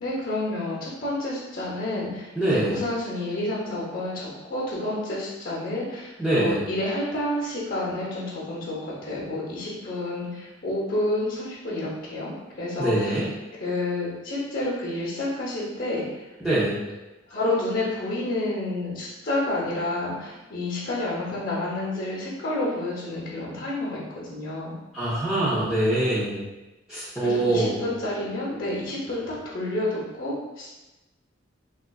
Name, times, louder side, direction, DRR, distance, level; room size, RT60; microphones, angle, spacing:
voice 1, 0.0-12.3 12.6-13.2 13.6-16.0 17.3-24.0 24.3-24.7 27.2-30.7, left 1 dB, 45° left, -5 dB, 0.8 m, -29 dB
voice 2, 2.4-2.8 6.2-6.6 12.8-13.3 16.4-16.8 24.9-26.4 26.9-27.8, right 1 dB, 5° right, -13 dB, 0.6 m, -24 dB
3.8 x 2.3 x 2.2 m, 1.0 s
head